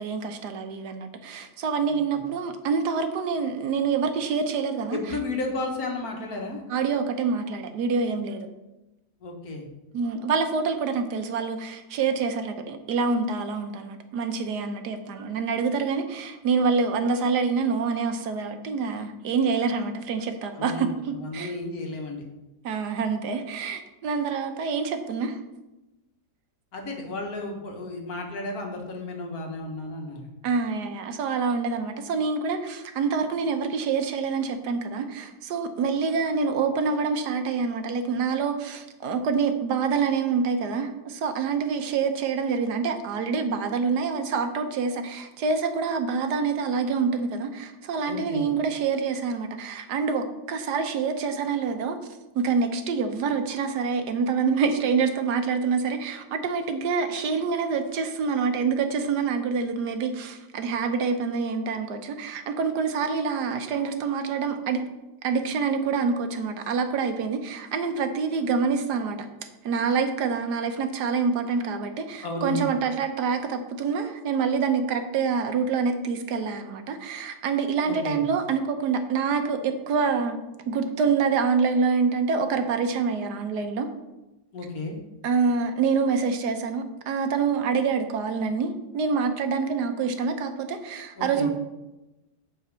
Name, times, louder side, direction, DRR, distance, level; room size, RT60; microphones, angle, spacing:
voice 1, 0.0-5.0 6.7-8.5 9.9-21.5 22.6-25.4 30.4-52.0 52.3-64.8 65.2-69.2 69.6-80.4 80.7-83.9 85.2-91.5, right 5 dB, 75° right, 7 dB, 1.4 m, -26 dB
voice 2, 4.9-6.6 9.2-9.7 20.6-22.2 26.7-30.3 48.1-48.5 72.2-72.7 77.9-78.2 84.5-85.0 91.2-91.5, left 2 dB, 65° left, 1 dB, 1.7 m, -33 dB
8.4 x 4.2 x 6.2 m, 1.0 s
omnidirectional pair, 1.8 m